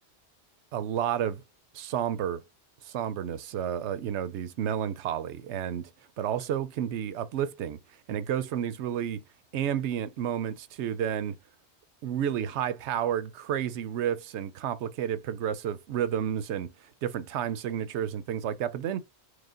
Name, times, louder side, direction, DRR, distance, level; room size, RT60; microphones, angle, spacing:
voice 1, 0.7-1.4 1.7-2.4 2.8-5.9 6.2-7.8 8.1-9.2 9.5-11.4 12.0-16.7 17.0-19.0, right 9 dB, 90° right, 0.9 m, -31 dB
4.8 x 2.1 x 3.7 m
omnidirectional pair, 1.1 m